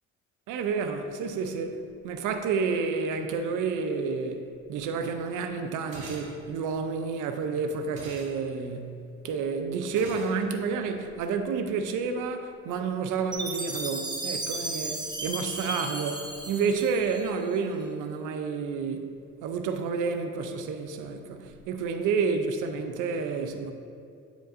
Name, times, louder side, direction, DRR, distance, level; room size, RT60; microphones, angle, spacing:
voice 1, 0.5-19.1 19.4-23.7, right 5 dB, 90° right, 0.5 m, -30 dB
sound 1, 5.9-6.3 8.0-8.3 10.0-10.3, right 2 dB, 55° right, 1.2 m, -42 dB
Chime, 13.3-17.6, right 2 dB, 15° right, 0.7 m, -35 dB
9.0 x 5.1 x 2.5 m
cardioid pair, 90°, 30 cm